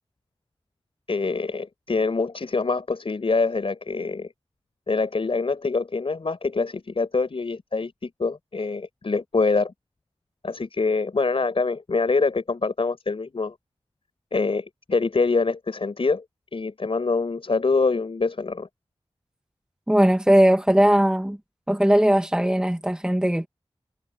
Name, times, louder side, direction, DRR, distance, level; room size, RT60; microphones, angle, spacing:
voice 1, 1.1-4.3 4.9-9.7 10.4-13.5 14.3-16.2 16.5-18.7, left 4 dB, 65° left, 5.1 m, -25 dB
voice 2, 19.9-21.4 21.7-23.5, right 1 dB, 10° right, 1.4 m, -19 dB
wide cardioid pair, 75°, 10 cm